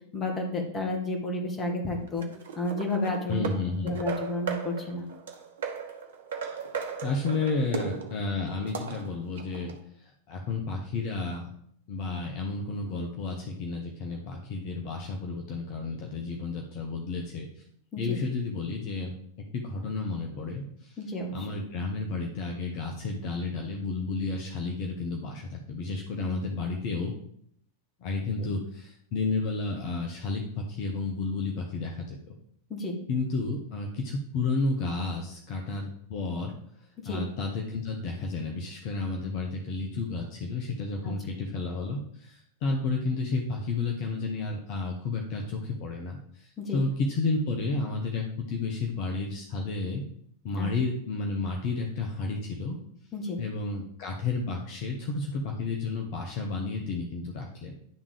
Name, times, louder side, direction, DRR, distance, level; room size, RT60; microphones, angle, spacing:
voice 1, 0.1-2.2 2.6-3.5 3.8-5.0 17.9-18.2 21.0-21.5 28.4-28.5 32.7-33.0 37.0-37.2 41.0-41.1 46.6-46.8 50.6-50.7 53.1-53.4, left 2 dB, 20° left, 2 dB, 1.8 m, -31 dB
sound 1, 1.9-9.8, right 5 dB, 60° right, 1.0 m, -37 dB
voice 2, 3.3-4.0 7.0-11.5 11.9-17.6 18.0-19.1 19.5-21.0 21.3-27.1 28.0-32.2 33.1-36.5 36.8-50.0 50.4-52.8 53.4-57.7, left 3 dB, 45° left, 1 dB, 1.0 m, -32 dB
10.5 x 3.6 x 5.0 m, 0.69 s
figure-of-eight pair, 90°, 0 cm